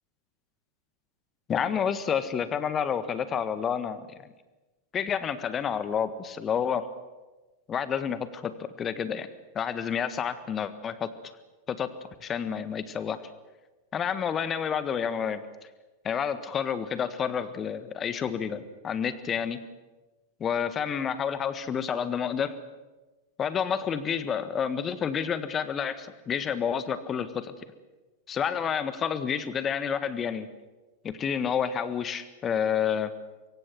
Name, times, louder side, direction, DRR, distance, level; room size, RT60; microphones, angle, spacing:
voice 1, 1.5-4.1 4.9-6.9 7.7-9.3 9.5-11.1 11.7-11.9 12.2-13.2 13.9-15.4 16.0-19.6 20.4-22.5 23.4-27.5 28.3-30.5 31.0-33.1, left 7 dB, 25° left, 13 dB, 1.6 m, -29 dB
24.5 x 23.5 x 6.3 m, 1.2 s
figure-of-eight pair, 90°, 0 cm